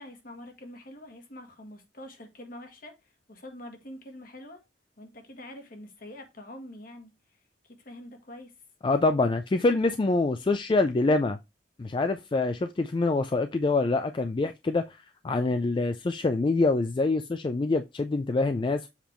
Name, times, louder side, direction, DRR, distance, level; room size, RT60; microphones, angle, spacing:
voice 1, 0.0-4.6 5.0-7.1 7.6-8.5, left 1 dB, 50° left, 1.6 m, -45 dB
voice 2, 8.8-11.4 11.8-18.9, left 3 dB, 25° left, 0.3 m, -25 dB
7.3 x 3.5 x 4.4 m
head